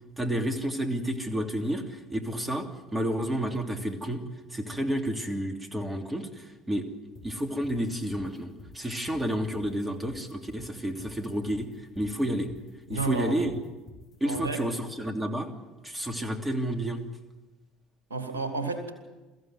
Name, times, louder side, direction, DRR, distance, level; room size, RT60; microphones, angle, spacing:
voice 1, 0.2-2.6 2.9-4.2 4.5-6.8 7.2-11.7 12.0-12.5 12.9-13.6 14.2-15.5 15.8-17.0, right 1 dB, 15° right, 5 dB, 3.0 m, -30 dB
sound 1, 7.1-14.6, left 2 dB, 45° left, 4.0 m, -48 dB
voice 2, 12.9-13.3 14.2-14.6 18.1-18.9, right 3 dB, 80° right, 6 dB, 2.7 m, -31 dB
23.0 x 15.0 x 9.6 m, 1.2 s
figure-of-eight pair, 60°, 0 cm